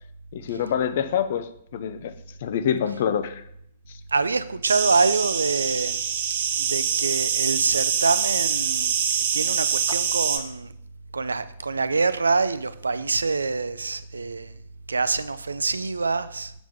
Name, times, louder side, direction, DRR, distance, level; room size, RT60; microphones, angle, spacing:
voice 1, 0.3-2.1 2.4-3.4 3.9-4.0, left 8 dB, 50° left, 0.5 m, -26 dB
voice 2, 4.1-6.0 6.6-8.9 9.3-10.7 11.1-14.5 14.9-16.5, right 4 dB, 75° right, 0.4 m, -25 dB
sound 1, 4.6-10.4, right 7 dB, 50° right, 0.7 m, -25 dB
7.1 x 5.9 x 3.5 m
figure-of-eight pair, 110°, 0 cm